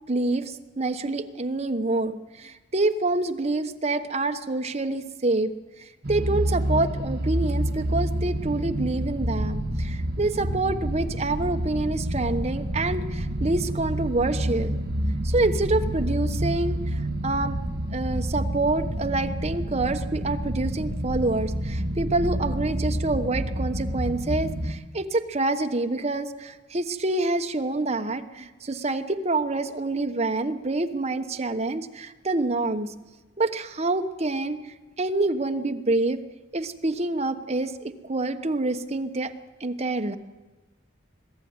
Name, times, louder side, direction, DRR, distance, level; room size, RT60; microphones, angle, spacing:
voice 1, 0.1-5.5 5.8-14.8 15.2-16.8 17.2-17.6 17.9-32.9 33.4-34.6 35.0-36.2 36.5-39.3 39.6-40.2, right 2 dB, 35° right, 7 dB, 1.1 m, -27 dB
sound 1, 6.0-24.7, right 1 dB, 55° right, 1.6 m, -28 dB
22.0 x 13.5 x 9.6 m, 1.2 s
head